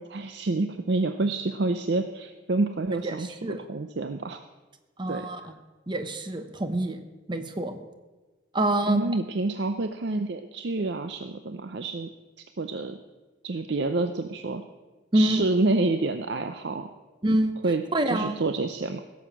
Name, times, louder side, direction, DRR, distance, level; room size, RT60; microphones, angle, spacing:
voice 1, 0.0-4.4 5.1-5.3 8.9-12.1 12.6-13.0 13.4-14.6 15.1-16.9 17.6-19.0, right 3 dB, 60° right, 8 dB, 0.6 m, -28 dB
voice 2, 3.0-3.6 5.0-5.5 5.9-7.0 7.3-7.8 8.5-9.2 15.1-15.4 17.2-17.6 17.9-18.3, right 1 dB, 25° right, 8 dB, 0.9 m, -26 dB
16.5 x 7.2 x 7.2 m, 1.3 s
head